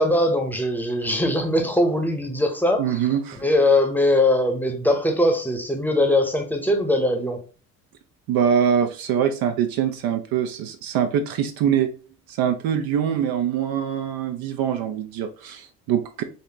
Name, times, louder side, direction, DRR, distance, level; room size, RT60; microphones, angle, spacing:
voice 1, 0.0-3.0 3.4-7.4, left 1 dB, 5° left, 0.8 m, -21 dB
voice 2, 2.8-3.4 8.3-11.9 12.3-16.2, right 8 dB, 55° right, 0.5 m, -23 dB
4.1 x 2.5 x 2.9 m
hypercardioid pair, 60°, 44 cm